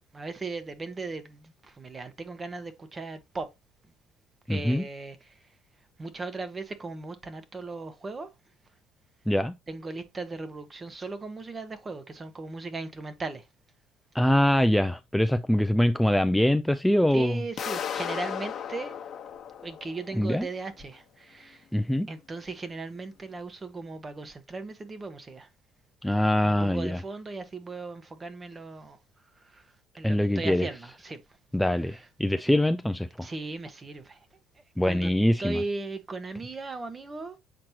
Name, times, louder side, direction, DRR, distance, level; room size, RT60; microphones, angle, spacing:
voice 1, 0.1-3.5 4.5-5.4 6.0-8.3 9.7-13.5 17.1-18.9 19.6-21.7 22.1-25.5 26.4-29.0 29.4-31.2 31.8-32.0 33.2-34.3 34.8-35.1 35.4-37.4, right 3 dB, 30° right, 1.3 m, -37 dB
voice 2, 4.5-4.8 9.3-9.5 14.1-17.4 20.2-20.5 21.7-22.1 26.0-27.0 30.0-30.7 31.5-33.1 34.8-35.6, left 1 dB, 5° left, 0.4 m, -23 dB
sound 1, 17.6-20.4, left 8 dB, 50° left, 1.1 m, -35 dB
7.5 x 4.4 x 2.9 m
supercardioid pair, 75°, 0 cm